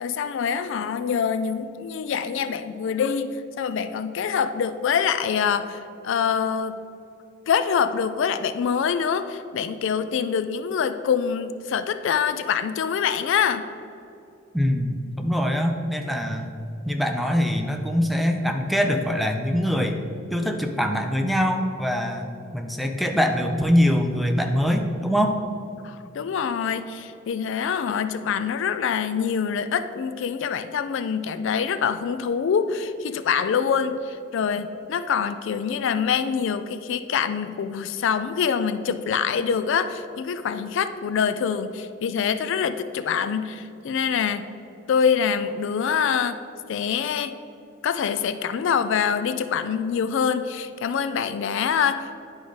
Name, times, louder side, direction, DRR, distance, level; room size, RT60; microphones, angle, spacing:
voice 1, 0.0-6.8 7.5-13.7 25.8-44.5 44.9-46.4 46.7-47.3 47.8-52.1, left 7 dB, 65° left, 11 dB, 0.3 m, -25 dB
voice 2, 14.5-16.5 16.8-20.0 20.3-22.3 22.5-25.4, equal, ahead, 3 dB, 0.5 m, -23 dB
10.0 x 4.8 x 3.9 m, 2.7 s
head